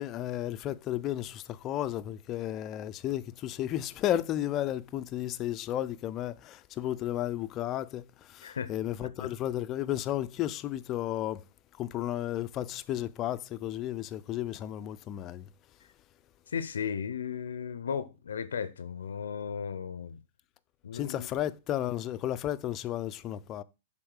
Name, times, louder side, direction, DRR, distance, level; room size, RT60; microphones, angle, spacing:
voice 1, 0.0-11.4 11.8-15.4 20.9-23.6, left 12 dB, 35° left, 0.5 m, -33 dB
voice 2, 16.5-20.2 20.8-21.3, left 7 dB, 85° left, 0.6 m, -35 dB
7.8 x 3.8 x 6.4 m
hypercardioid pair, 110°, 0 cm